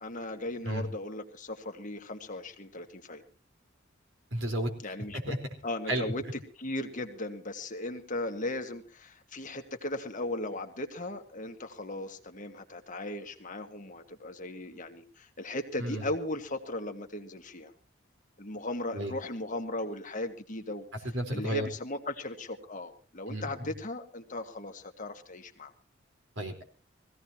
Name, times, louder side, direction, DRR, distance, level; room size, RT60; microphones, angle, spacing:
voice 1, 0.0-3.2 4.8-5.4 5.6-6.2 6.6-17.7 18.4-25.7, left 1 dB, 40° left, 5 dB, 1.7 m, -37 dB
voice 2, 4.3-4.7 5.3-5.4 5.9-6.1 15.8-16.1 18.9-19.1 21.1-21.7 23.3-23.7 26.4-26.6, right 1 dB, 70° right, 3 dB, 4.2 m, -32 dB
23.0 x 16.5 x 2.9 m, 0.35 s
head